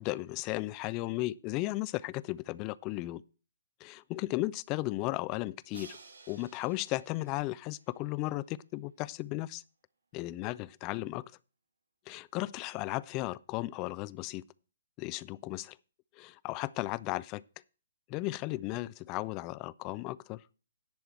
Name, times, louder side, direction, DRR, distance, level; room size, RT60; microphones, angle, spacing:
voice 1, 0.0-3.2 3.8-6.0 6.3-9.6 10.1-11.3 12.1-14.4 15.0-15.8 16.2-17.4 18.1-20.4, left 19 dB, 30° left, 0.4 m, -35 dB
Crash cymbal, 5.7-8.7, right 4 dB, 75° right, 1.6 m, -54 dB
10.5 x 4.6 x 7.7 m
figure-of-eight pair, 130°, 0 cm